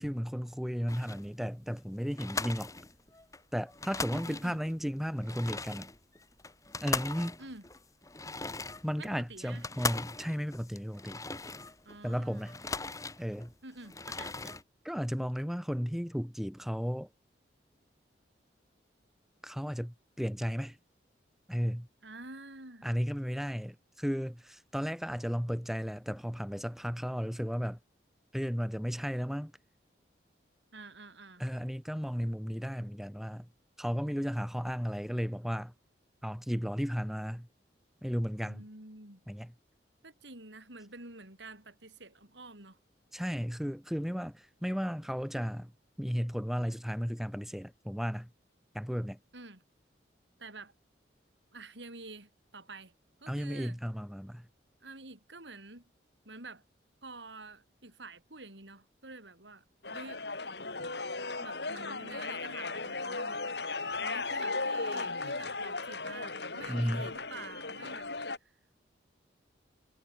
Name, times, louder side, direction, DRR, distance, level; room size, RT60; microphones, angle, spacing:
voice 1, 0.0-2.7 3.5-5.9 6.8-7.4 8.8-11.2 12.0-12.6 13.2-13.5 14.8-17.1 19.4-20.8 21.5-21.9 22.8-27.8 28.3-29.5 31.4-33.5 33.8-35.7 36.2-37.5 38.0-38.6 39.3-39.5 43.1-45.7 46.0-48.3 48.7-49.2 53.3-54.5 66.7-67.1, equal, ahead, 2.2 m, -34 dB
sound 1, 0.9-1.3 1.7-1.8 2.1-3.4 3.7-4.7 5.1-12.0 12.3-13.5 13.8-14.6, left 3 dB, 20° left, 2.8 m, -39 dB
voice 2, 4.1-4.6 7.4-7.6 9.0-9.6 11.9-12.5 13.6-14.6 22.0-22.9 30.7-31.5 38.5-39.2 40.0-42.8 49.3-49.6 50.4-50.7 51.5-52.9 53.2-53.8 54.8-55.8 56.3-56.6 57.0-59.6 59.9-60.2 61.4-63.4 64.0-68.1 68.4-68.5, right 3 dB, 80° right, 7.3 m, -48 dB
sound 2, 59.8-68.4, left 3 dB, 70° left, 5.8 m, -36 dB
head